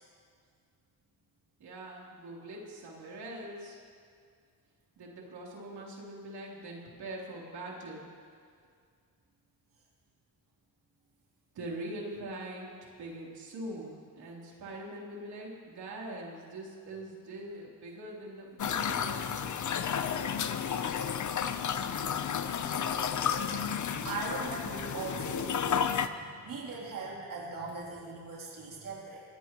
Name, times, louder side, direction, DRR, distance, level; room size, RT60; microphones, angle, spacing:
voice 1, 1.6-3.8 5.0-8.0 11.5-12.7 13.0-19.6, right 1 dB, 85° right, -3 dB, 3.4 m, -43 dB
sound 1, 18.6-26.1, left 7 dB, 50° left, 0.7 m, -32 dB
voice 2, 23.5-26.2 26.4-29.2, right 3 dB, 60° right, -4 dB, 3.1 m, -40 dB
25.0 x 17.5 x 3.0 m, 2.2 s
cardioid pair, 125°, 38 cm